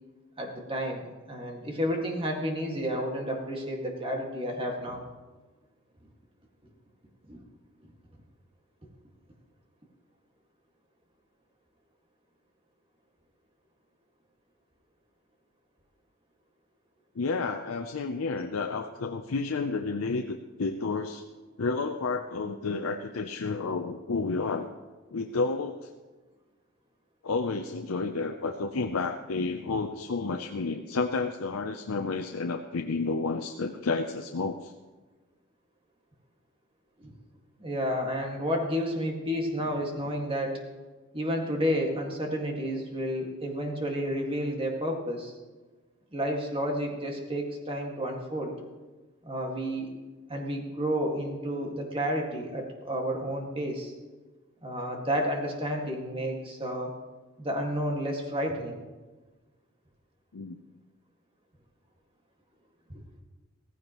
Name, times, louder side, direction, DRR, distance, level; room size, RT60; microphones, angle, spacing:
voice 1, 0.4-5.0 7.3-7.4 37.0-37.1 37.6-40.6 41.1-45.3 46.1-48.5 49.2-49.9 50.3-53.9 54.6-56.9 57.4-58.8, equal, 25° right, 1 dB, 2.0 m, -31 dB
voice 2, 17.2-21.2 21.6-24.7 25.1-25.9 27.2-34.7 60.3-60.6, left 4 dB, 85° left, 4 dB, 0.6 m, -31 dB
16.5 x 15.0 x 3.1 m, 1.3 s
head